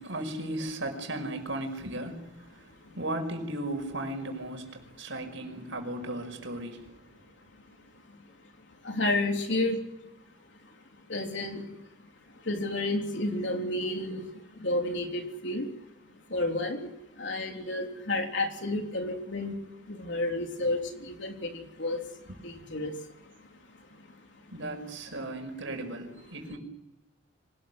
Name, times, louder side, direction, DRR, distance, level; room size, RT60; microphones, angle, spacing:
voice 1, 0.0-2.7 2.9-6.9 24.5-26.6, right 1 dB, 75° right, 5 dB, 5.5 m, -36 dB
voice 2, 8.8-9.8 11.1-11.8 12.4-15.7 16.3-16.9 17.2-19.6 19.9-22.1 22.4-23.3 23.9-24.0, left 2 dB, 65° left, 3 dB, 3.6 m, -31 dB
25.5 x 19.5 x 7.9 m, 0.91 s
head